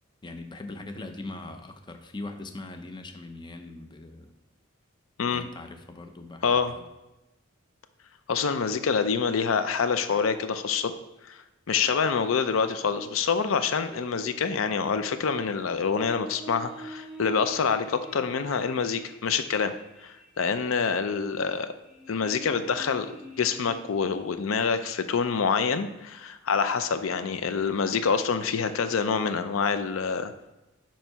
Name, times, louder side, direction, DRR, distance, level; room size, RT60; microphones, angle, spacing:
voice 1, 0.2-4.3 5.3-6.8, left 2 dB, 20° left, 6 dB, 0.6 m, -41 dB
voice 2, 6.4-6.7 8.3-10.9 11.2-19.7 20.0-21.7 22.1-30.5, left 5 dB, 75° left, 10 dB, 0.5 m, -26 dB
ah heee, 13.8-24.3, equal, 5° right, 1.9 m, -46 dB
8.9 x 3.1 x 5.6 m, 1.0 s
head